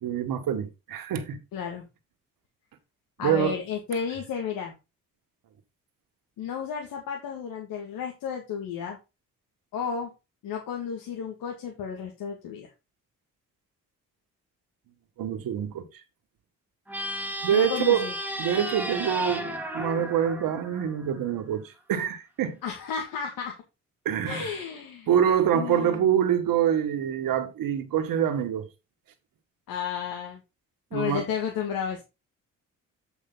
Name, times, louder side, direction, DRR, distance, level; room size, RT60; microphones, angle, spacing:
voice 1, 0.0-1.4 3.2-3.6 15.2-15.8 17.4-18.1 18.4-22.6 24.0-24.5 25.1-28.7 30.9-31.2, right 9 dB, 75° right, 1.6 m, -25 dB
voice 2, 1.5-1.8 3.2-4.7 6.4-9.0 9.7-10.1 10.4-12.7 17.5-18.1 22.6-23.5 24.3-25.1 25.5-26.0 29.7-30.4 30.9-32.0, left 7 dB, 85° left, 2.0 m, -32 dB
sound 1, 16.9-21.3, right 1 dB, 5° right, 2.1 m, -34 dB
8.3 x 5.4 x 3.8 m
cardioid pair, 65°, 34 cm